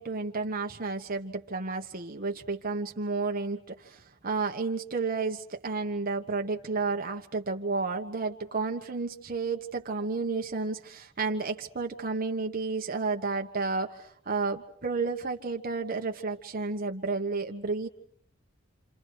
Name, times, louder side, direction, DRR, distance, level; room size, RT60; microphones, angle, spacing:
voice 1, 0.0-17.9, right 4 dB, 45° right, 3 dB, 1.3 m, -31 dB
28.5 x 28.5 x 4.7 m, 0.63 s
head